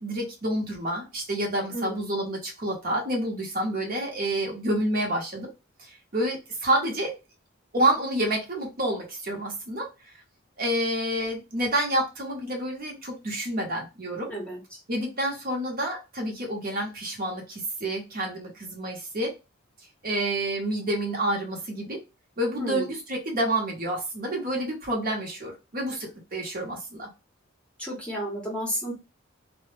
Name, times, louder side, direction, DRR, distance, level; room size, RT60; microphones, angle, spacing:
voice 1, 0.0-5.5 5.8-7.1 7.7-9.9 10.6-14.3 14.9-19.3 20.0-22.0 22.4-27.1, right 1 dB, 45° right, 1 dB, 0.8 m, -28 dB
voice 2, 1.7-2.0 14.3-14.6 22.6-22.9 27.8-28.9, equal, 5° left, -3 dB, 0.7 m, -32 dB
2.1 x 2.0 x 3.0 m, 0.28 s
head